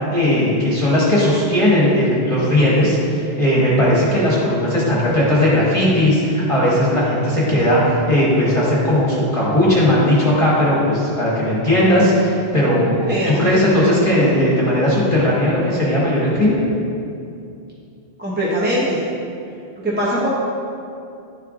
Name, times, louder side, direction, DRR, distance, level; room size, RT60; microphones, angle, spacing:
voice 1, 0.1-16.5, left 1 dB, 30° left, -8 dB, 1.3 m, -17 dB
voice 2, 13.1-13.5 18.2-19.0 19.8-20.3, equal, 10° right, -7 dB, 0.8 m, -21 dB
11.0 x 4.4 x 2.5 m, 2.5 s
omnidirectional pair, 1.1 m